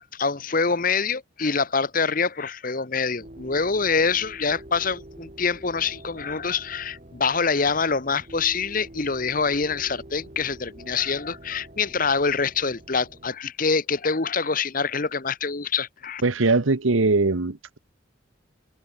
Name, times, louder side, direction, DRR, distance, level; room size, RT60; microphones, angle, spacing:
voice 1, 0.1-16.2, left 5 dB, 45° left, 1.0 m, -25 dB
sound 1, 3.2-13.3, right 1 dB, 35° right, 1.9 m, -46 dB
voice 2, 16.2-17.8, right 3 dB, 85° right, 1.1 m, -21 dB
head